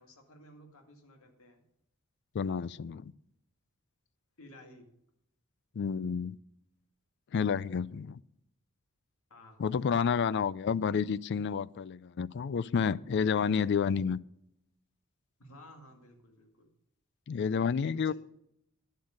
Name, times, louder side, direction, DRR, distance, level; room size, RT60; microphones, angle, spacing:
voice 1, 0.0-1.6 4.4-4.9 9.3-9.8 15.4-16.7 18.0-18.1, left 1 dB, 70° left, 2.1 m, -55 dB
voice 2, 2.3-3.1 5.8-6.4 7.3-8.2 9.6-14.2 17.3-18.1, left 6 dB, 50° left, 0.3 m, -30 dB
10.5 x 8.1 x 6.4 m
head